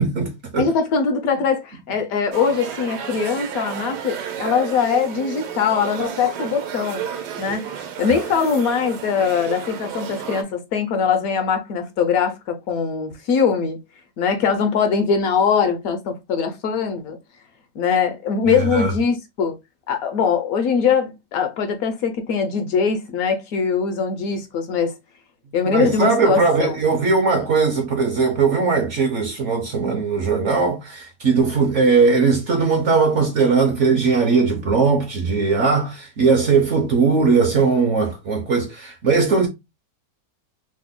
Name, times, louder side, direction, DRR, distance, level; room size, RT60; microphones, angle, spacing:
voice 1, 0.0-0.7 18.4-18.9 25.6-39.5, right 4 dB, 65° right, 0.8 m, -19 dB
voice 2, 0.6-7.0 7.4-13.8 14.2-17.2 17.8-19.6 19.9-24.9 25.5-26.8, left 6 dB, 70° left, 0.9 m, -22 dB
sound 1, 2.3-10.4, right 8 dB, 85° right, 1.2 m, -32 dB
3.1 x 2.1 x 3.4 m
omnidirectional pair, 1.7 m